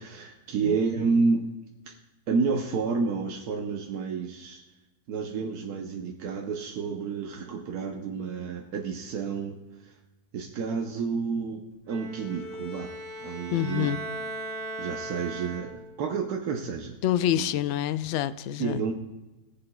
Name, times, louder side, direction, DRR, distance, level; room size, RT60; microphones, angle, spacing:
voice 1, 0.0-1.5 1.9-2.0 2.3-4.6 5.1-9.9 10.3-12.9 13.2-13.9 14.8-16.9 17.4-17.5 18.6-18.9, right 5 dB, 70° right, 1 dB, 1.3 m, -30 dB
Bowed string instrument, 11.9-16.0, right 1 dB, 30° right, 2.4 m, -38 dB
voice 2, 13.5-14.0 17.0-18.9, left 11 dB, 75° left, 13 dB, 0.6 m, -27 dB
21.5 x 7.7 x 2.3 m, 1.1 s
omnidirectional pair, 1.8 m